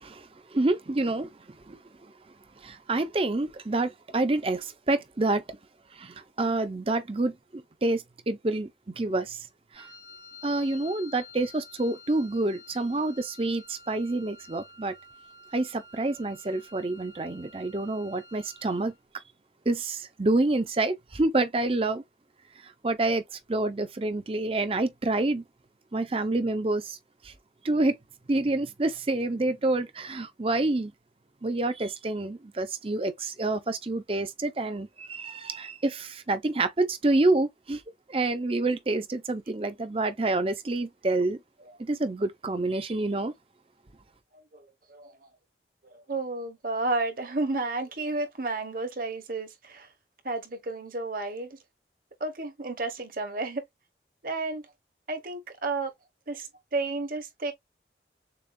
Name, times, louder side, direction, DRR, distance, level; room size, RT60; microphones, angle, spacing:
voice 1, 0.0-1.3 1.7-1.8 2.6-5.6 6.0-8.7 9.0-9.5 9.7-9.9 10.4-14.9 15.5-18.9 19.7-22.0 22.8-23.2 23.5-25.4 25.9-27.0 27.2-27.3 27.6-28.0 28.3-30.9 31.4-37.8 38.1-41.4 41.8-43.3, right 2 dB, 30° right, 0.6 m, -28 dB
Wind instrument woodwind instrument, 9.7-19.0, left 3 dB, 70° left, 2.1 m, -50 dB
voice 2, 44.3-44.6 44.9-45.1 45.8-49.9 50.2-51.6 52.2-53.6 54.2-54.6 55.1-55.9 56.3-57.5, right 3 dB, 50° right, 1.1 m, -32 dB
6.9 x 2.4 x 2.5 m
head